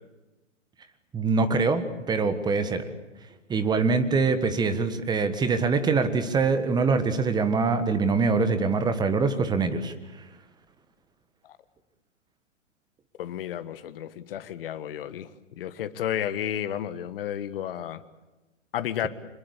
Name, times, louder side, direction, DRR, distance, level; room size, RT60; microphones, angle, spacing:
voice 1, 1.1-2.9 3.5-10.2, right 4 dB, 10° right, 10 dB, 1.5 m, -24 dB
voice 2, 13.2-15.3 15.6-18.0 18.7-19.1, left 10 dB, 50° left, 13 dB, 1.5 m, -32 dB
26.0 x 21.0 x 8.2 m, 1.1 s
figure-of-eight pair, 125°, 37 cm